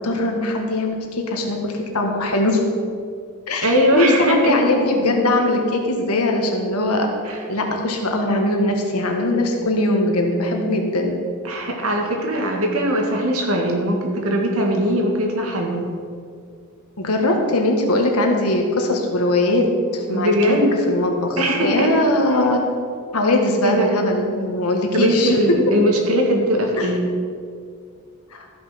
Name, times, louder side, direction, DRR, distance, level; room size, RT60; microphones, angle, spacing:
voice 1, 0.0-2.6 3.5-7.1 7.5-11.2 17.0-19.7 19.9-20.6 20.9-22.6 23.1-25.6 26.8-26.9 28.3-28.4, left 2 dB, 90° left, 2 dB, 1.7 m, -20 dB
voice 2, 3.6-4.7 7.2-7.4 11.4-15.8 20.1-20.7 21.4-21.9 23.6-24.0 24.9-27.1, equal, 75° right, 1 dB, 2.0 m, -20 dB
13.5 x 6.0 x 5.9 m, 2.2 s
head